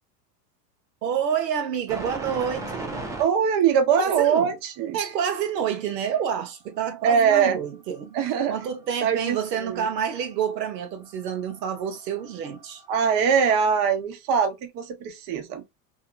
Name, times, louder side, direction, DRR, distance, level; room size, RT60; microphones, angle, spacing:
voice 1, 1.0-3.1 4.0-4.5 4.9-12.8, right 8 dB, 85° right, 0.8 m, -28 dB
sound 1, 1.9-3.2 6.1-6.2 8.0-8.1 8.4-10.3 10.7-13.9, right 2 dB, 5° right, 0.4 m, -38 dB
voice 2, 3.2-5.0 7.0-7.6 8.1-8.6 9.0-9.9 12.9-15.6, right 7 dB, 45° right, 0.8 m, -22 dB
2.8 x 2.3 x 2.3 m
hypercardioid pair, 100°, 49 cm